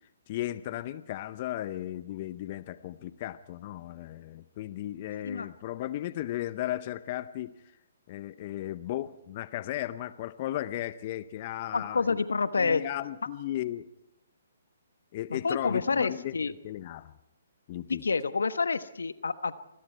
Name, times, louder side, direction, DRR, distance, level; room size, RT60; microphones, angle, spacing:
voice 1, 0.3-7.5 8.1-12.2 12.6-13.9 15.1-17.1 17.7-18.0, left 13 dB, 40° left, 14 dB, 0.7 m, -35 dB
voice 2, 11.7-12.8 15.3-16.5 17.9-19.5, left 4 dB, 80° left, 12 dB, 1.2 m, -28 dB
27.5 x 21.0 x 4.5 m, 0.88 s
hypercardioid pair, 135°, 0 cm